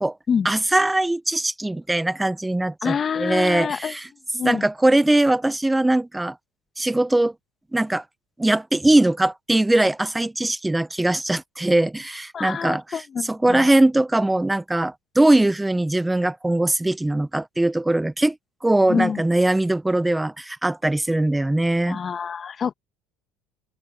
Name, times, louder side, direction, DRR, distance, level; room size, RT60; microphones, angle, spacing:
voice 1, 0.4-4.1 4.4-6.4 6.8-7.3 7.7-8.0 8.4-18.3 18.6-22.0, right 1 dB, 10° right, 1.0 m, -21 dB
voice 2, 2.8-3.9 4.3-4.7 12.3-13.7 18.9-19.2 21.9-22.7, left 7 dB, 35° left, 1.6 m, -26 dB
open air
hypercardioid pair, 75°, 0 cm